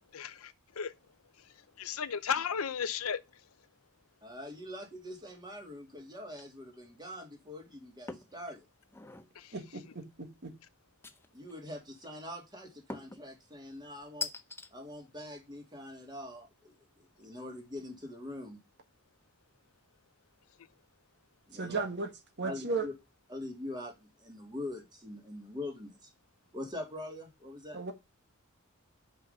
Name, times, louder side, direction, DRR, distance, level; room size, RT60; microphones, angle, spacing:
voice 1, 0.1-0.9 1.8-3.2 9.4-9.5, left 7 dB, 75° left, 0.6 m, -34 dB
voice 2, 4.2-8.7 11.3-14.3 14.7-18.6 21.5-21.8 22.4-22.9 23.3-26.1 26.5-27.8, left 1 dB, 20° right, 2.4 m, -43 dB
sound 1, 8.1-8.4 8.8-9.3 11.0-11.6 12.9-13.3 14.2-14.7, left 3 dB, 10° left, 0.6 m, -41 dB
voice 3, 9.5-10.5 21.5-22.1 22.4-22.9 27.7-27.9, right 4 dB, 55° right, 1.4 m, -35 dB
5.6 x 5.6 x 6.6 m
head